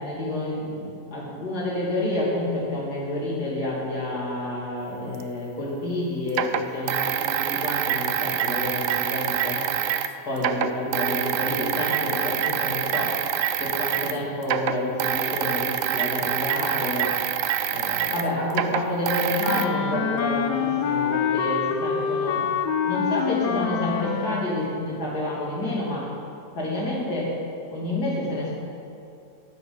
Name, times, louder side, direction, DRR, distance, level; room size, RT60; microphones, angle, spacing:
voice 1, 0.0-9.7 10.2-13.1 13.6-17.1 17.7-22.4 22.9-26.1 26.5-27.3 27.7-28.5, left 1 dB, 70° left, -5 dB, 3.1 m, -29 dB
sound 1, 5.2-5.3 6.3-10.1 10.4-14.2 14.4-19.6, right 10 dB, 70° right, 0.8 m, -26 dB
Wind instrument woodwind instrument, 19.4-24.6, left 7 dB, 85° left, 1.3 m, -26 dB
16.0 x 9.0 x 4.0 m, 2.6 s
omnidirectional pair, 1.8 m